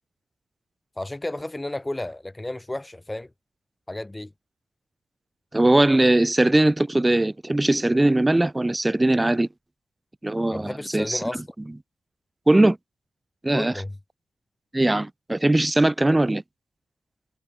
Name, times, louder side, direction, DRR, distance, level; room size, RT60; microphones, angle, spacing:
voice 1, 1.0-3.3 3.9-4.3 10.5-11.4 13.5-14.0, left 1 dB, 10° left, 3.3 m, -32 dB
voice 2, 5.5-9.5 10.2-11.2 12.5-12.8 13.4-13.7 14.7-16.4, right 1 dB, 15° right, 0.8 m, -20 dB
wide cardioid pair, 110°, 0 cm